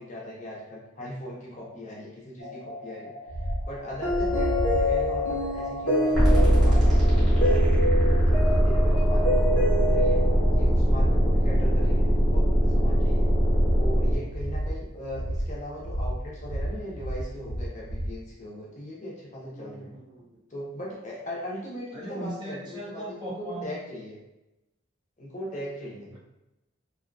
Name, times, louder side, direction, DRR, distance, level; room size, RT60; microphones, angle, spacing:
voice 1, 0.0-3.1 3.7-10.2 10.5-13.3 13.7-19.9 20.5-24.2 25.2-26.1, equal, 35° left, -4 dB, 0.6 m, -39 dB
sound 1, 2.4-10.6, left 1 dB, 70° left, 0.7 m, -28 dB
sound 2, 3.3-18.2, equal, 80° right, 0.6 m, -32 dB
sound 3, 6.1-14.1, equal, ahead, 0.9 m, -21 dB
voice 2, 19.5-20.4 21.9-23.7 26.1-26.2, right 1 dB, 20° right, -5 dB, 0.4 m, -39 dB
2.6 x 2.2 x 2.5 m, 0.95 s
head